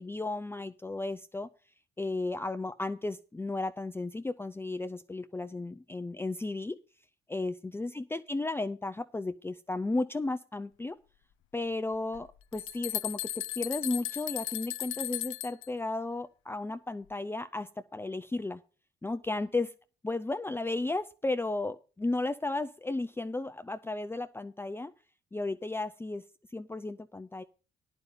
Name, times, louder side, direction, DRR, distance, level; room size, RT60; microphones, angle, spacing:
voice 1, 0.0-1.5 2.0-6.8 7.3-11.0 11.5-18.6 19.0-19.7 20.0-24.9 25.3-26.2 26.5-27.4, left 2 dB, 10° left, 9 dB, 0.5 m, -34 dB
sound 1, 12.1-12.2 12.5-15.7, left 14 dB, 80° left, 0.7 m, -36 dB
9.7 x 5.4 x 8.2 m, 0.36 s
cardioid pair, 90°, 20 cm